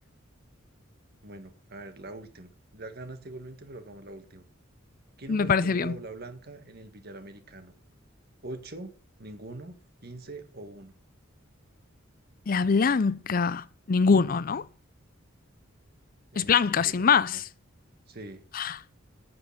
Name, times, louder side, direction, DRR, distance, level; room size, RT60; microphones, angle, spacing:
voice 1, 1.2-4.4 5.2-7.7 8.4-8.9 9.2-10.9 16.3-17.4 18.1-18.4, right 2 dB, 50° right, 1.6 m, -43 dB
voice 2, 5.3-6.0 12.5-14.6 16.4-17.3 18.5-18.8, left 5 dB, 45° left, 0.5 m, -23 dB
9.4 x 8.8 x 7.5 m
head